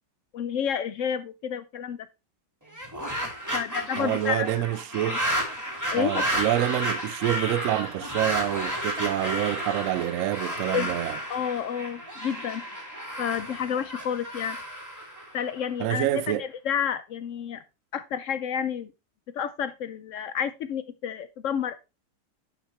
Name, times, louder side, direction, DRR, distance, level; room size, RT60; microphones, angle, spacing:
voice 1, 0.3-2.1 3.5-4.5 5.1-5.2 5.9-6.3 10.7-10.9 11.3-12.6 13.2-14.6 15.3-17.6 17.9-18.9 19.3-21.8, left 8 dB, 80° left, 0.7 m, -30 dB
sound 1, 2.7-15.8, equal, 10° right, 2.5 m, -32 dB
voice 2, 4.0-5.2 5.9-11.2 15.8-16.4, right 13 dB, 80° right, 0.7 m, -27 dB
10.5 x 5.9 x 3.2 m
omnidirectional pair, 1.9 m